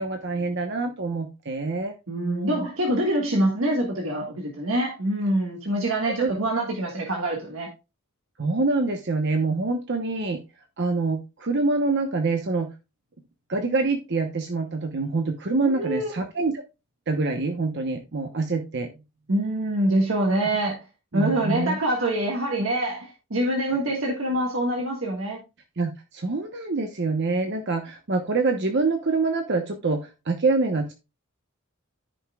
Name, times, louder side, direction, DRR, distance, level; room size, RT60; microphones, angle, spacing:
voice 1, 0.0-1.9 2.2-2.7 6.2-6.3 8.4-10.4 10.8-12.7 13.5-16.6 17.1-18.9 21.1-21.8 25.8-30.9, right 3 dB, 55° right, 1.0 m, -26 dB
voice 2, 2.1-7.7 15.6-16.1 19.3-20.8 21.1-25.4, right 1 dB, 75° right, 1.6 m, -25 dB
13.5 x 5.5 x 2.3 m
head